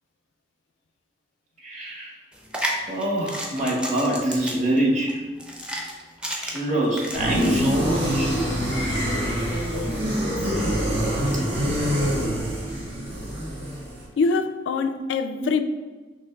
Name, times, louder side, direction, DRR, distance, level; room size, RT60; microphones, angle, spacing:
voice 1, 1.6-2.1 2.6-5.2 6.4-8.3 15.0-15.1 15.4-15.5, right 1 dB, 40° right, 1.1 m, -25 dB
sound 1, 2.3-7.6, equal, 5° right, 0.4 m, -32 dB
sound 2, 7.1-14.0, equal, 85° right, 1.3 m, -25 dB
voice 2, 14.2-15.6, left 4 dB, 80° left, 0.3 m, -24 dB
6.1 x 2.9 x 2.3 m
head